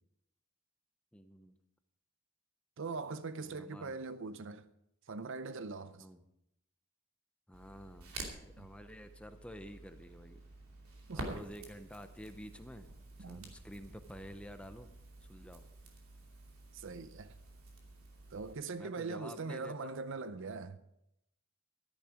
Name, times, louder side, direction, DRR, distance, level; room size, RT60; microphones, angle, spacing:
voice 1, 1.1-1.6 3.4-4.0 6.0-6.2 7.5-10.4 11.1-12.9 13.2-14.9 15.2-15.6 18.7-20.0, equal, 5° left, 0.6 m, -50 dB
voice 2, 2.8-4.6 5.1-6.1 8.6-8.7 11.1-11.5 13.2-13.5 16.7-17.4 18.3-20.8, right 4 dB, 60° right, 0.6 m, -41 dB
Crackle, 7.5-18.5, right 2 dB, 75° right, 2.7 m, -50 dB
13.5 x 10.5 x 5.0 m
head